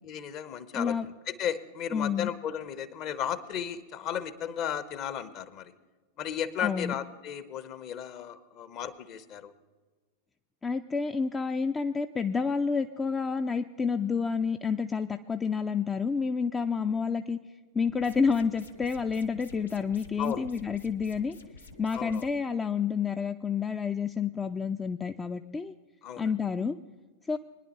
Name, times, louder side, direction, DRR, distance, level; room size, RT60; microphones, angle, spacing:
voice 1, 0.0-1.0 1.3-5.7 6.2-9.5 20.2-20.5 21.9-22.3 26.0-26.3, left 9 dB, 40° left, 14 dB, 0.8 m, -34 dB
voice 2, 0.7-1.1 1.9-2.3 6.6-6.9 10.6-17.4 17.7-21.4 21.8-25.7 26.2-26.8 27.3-27.4, left 5 dB, 15° left, 8 dB, 0.4 m, -29 dB
sound 1, 17.9-22.3, left 3 dB, 75° left, 0.9 m, -50 dB
23.0 x 10.5 x 3.0 m, 1.4 s
figure-of-eight pair, 90°, 0 cm